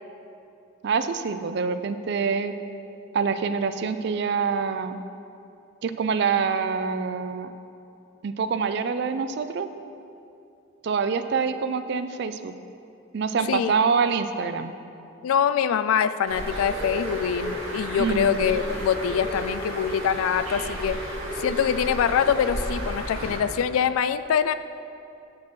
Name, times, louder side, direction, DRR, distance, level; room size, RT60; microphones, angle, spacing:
voice 1, 0.8-2.5 3.1-5.0 5.8-7.5 8.2-9.7 10.8-12.5 13.1-14.7 18.0-18.3, right 5 dB, 55° right, 10 dB, 0.3 m, -25 dB
voice 2, 15.2-21.0 21.4-24.5, left 8 dB, 85° left, 14 dB, 0.3 m, -24 dB
Bird, 16.3-23.4, right 1 dB, 85° right, 1.8 m, -32 dB
7.6 x 6.1 x 4.4 m, 2.6 s
head